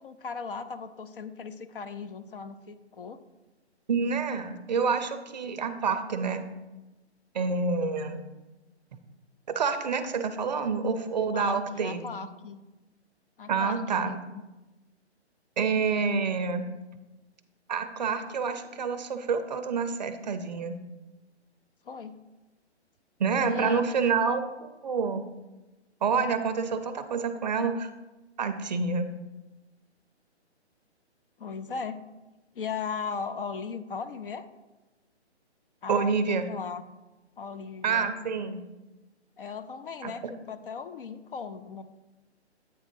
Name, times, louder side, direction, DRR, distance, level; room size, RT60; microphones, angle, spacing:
voice 1, 0.0-3.2 11.3-12.6 13.4-14.4 21.8-22.2 23.5-23.9 24.2-24.3 31.4-32.0 32.5-34.5 35.8-36.8 37.4-38.1 39.4-41.8, left 5 dB, 55° left, 11 dB, 0.5 m, -37 dB
voice 2, 3.9-6.4 7.3-8.2 9.5-12.0 13.5-14.1 15.6-16.6 17.7-20.8 23.2-25.2 26.0-27.9 28.4-29.1 35.9-36.5 37.8-38.6 40.0-40.1, right 5 dB, 40° right, 9 dB, 0.5 m, -28 dB
8.5 x 3.6 x 5.3 m, 1.1 s
hypercardioid pair, 150°, 34 cm